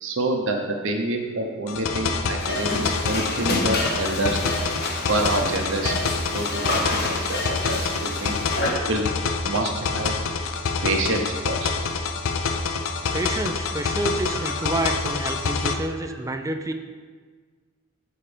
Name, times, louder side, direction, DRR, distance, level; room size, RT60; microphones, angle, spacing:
voice 1, 0.0-4.5 5.1-5.9 6.3-8.4 8.9-9.0 9.4-10.1 10.8-11.7 14.4-14.7, right 2 dB, 60° right, 2 dB, 0.7 m, -27 dB
sound 1, 1.7-15.7, left 4 dB, 65° left, 0.5 m, -27 dB
sound 2, 2.4-8.7, left 1 dB, 50° left, 1.0 m, -29 dB
voice 2, 13.1-16.7, right 2 dB, 15° right, 7 dB, 0.3 m, -28 dB
7.0 x 4.3 x 5.0 m, 1.5 s
head